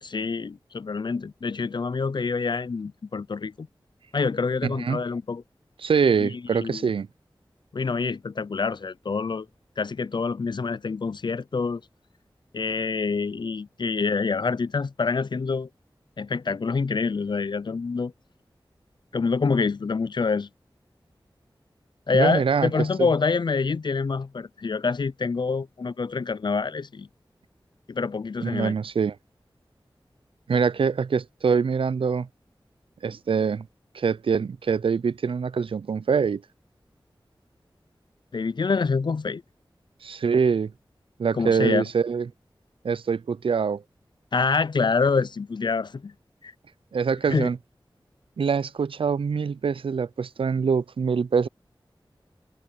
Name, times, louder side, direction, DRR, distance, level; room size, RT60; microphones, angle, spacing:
voice 1, 0.0-3.7 4.1-5.4 6.2-6.9 7.7-9.5 9.8-11.8 12.5-15.7 16.2-18.1 19.1-20.5 22.1-27.1 27.9-28.8 38.3-39.4 41.3-41.8 44.3-46.1 46.4-46.5 47.3-47.5, left 4 dB, 60° left, 0.4 m, -26 dB
voice 2, 4.6-5.0 5.8-7.1 22.1-23.1 28.4-29.1 30.5-32.3 33.0-33.7 33.9-36.4 40.0-40.7 41.2-42.3 42.8-43.8 46.9-47.6 48.4-51.5, right 6 dB, 90° right, 0.4 m, -24 dB
wide cardioid pair, 55°, 9 cm